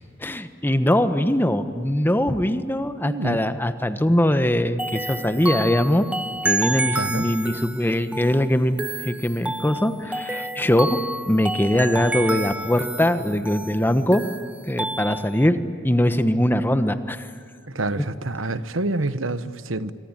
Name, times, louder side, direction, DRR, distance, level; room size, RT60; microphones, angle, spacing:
voice 1, 0.2-6.1 6.4-11.0 11.3-14.2 14.7-15.6 15.8-17.3, left 1 dB, 10° left, 10 dB, 1.3 m, -21 dB
voice 2, 3.0-3.4 7.0-7.2 17.7-19.9, right 2 dB, 85° right, 13 dB, 1.2 m, -27 dB
sound 1, 4.8-15.5, right 2 dB, 5° right, 0.6 m, -30 dB
27.0 x 24.5 x 9.0 m, 2.2 s
head